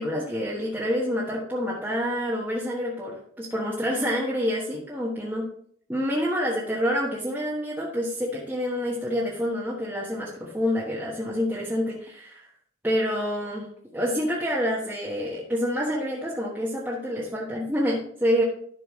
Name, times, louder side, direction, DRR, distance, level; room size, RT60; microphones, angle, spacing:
voice 1, 0.0-5.5 5.9-12.5 12.8-18.4, equal, 10° right, -6 dB, 1.2 m, -27 dB
12.0 x 5.7 x 3.1 m, 0.63 s
head